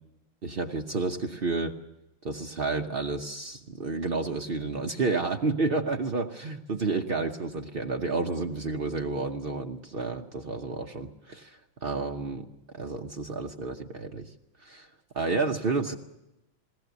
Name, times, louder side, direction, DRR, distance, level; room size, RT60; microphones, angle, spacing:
voice 1, 0.4-1.8 2.2-12.5 12.7-14.3 14.6-14.9 15.1-15.9, right 3 dB, 80° right, 3 dB, 0.5 m, -30 dB
20.5 x 18.0 x 8.1 m, 0.94 s
omnidirectional pair, 2.2 m